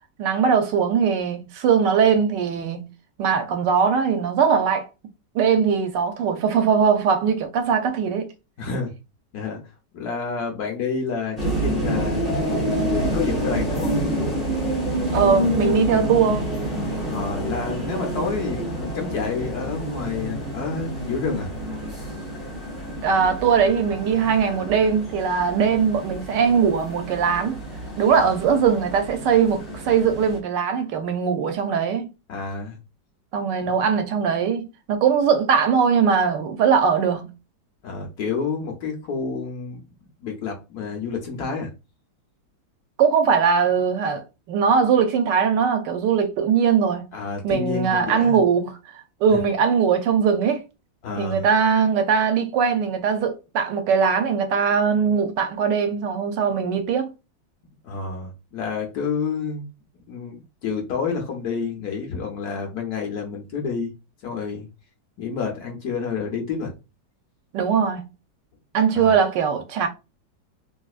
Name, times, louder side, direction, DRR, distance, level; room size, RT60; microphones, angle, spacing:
voice 1, 0.2-2.9 3.2-4.9 5.3-8.3 15.1-16.5 23.0-27.6 28.0-32.1 33.3-37.3 43.0-47.1 47.4-50.6 51.2-57.1 67.5-68.0 68.7-69.9, right 6 dB, 75° right, 1.1 m, -20 dB
voice 2, 8.6-8.9 9.3-9.6 9.9-12.2 12.8-14.0 17.0-21.5 32.3-32.8 33.6-33.7 37.8-39.8 40.2-41.7 47.1-48.4 49.3-49.4 51.0-51.4 57.8-59.6 60.1-63.9 64.2-64.7 65.2-66.7 68.9-69.1, left 5 dB, 60° left, 1.2 m, -29 dB
sound 1, 11.4-30.4, equal, ahead, 1.2 m, -28 dB
3.9 x 2.5 x 2.4 m
omnidirectional pair, 2.1 m